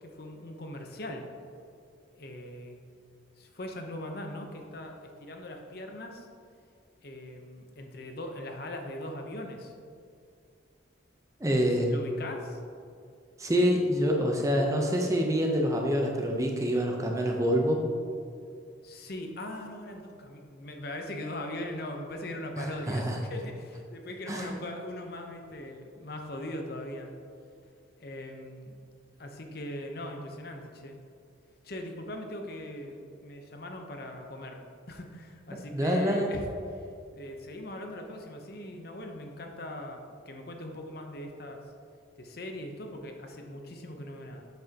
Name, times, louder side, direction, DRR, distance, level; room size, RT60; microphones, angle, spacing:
voice 1, 0.0-1.3 2.2-2.8 3.4-6.3 7.0-9.7 11.4-12.6 18.8-27.1 28.0-28.7 29.2-31.0 31.6-34.6 34.9-36.5 36.7-40.0 40.3-41.6 42.2-44.4, left 1 dB, 55° left, 3 dB, 0.8 m, -40 dB
voice 2, 11.4-11.9 13.4-17.8 22.6-23.2 24.3-24.5 35.5-36.3, equal, 15° right, 1 dB, 0.7 m, -26 dB
7.7 x 7.3 x 2.9 m, 2.4 s
head